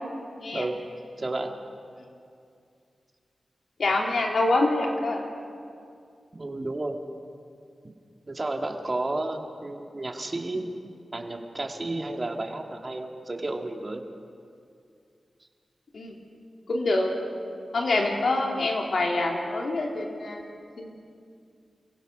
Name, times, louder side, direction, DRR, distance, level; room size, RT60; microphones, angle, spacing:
voice 1, 1.2-1.5 3.9-4.0 6.3-7.0 8.3-10.7 11.1-14.1 15.4-15.5, right 2 dB, 40° right, 4 dB, 2.2 m, -32 dB
voice 2, 3.8-5.2 15.9-16.1 16.7-17.1 17.7-20.4 20.8-21.0, left 2 dB, 75° left, 1 dB, 3.1 m, -25 dB
28.0 x 16.5 x 6.2 m, 2.4 s
cardioid pair, 55°, 0 cm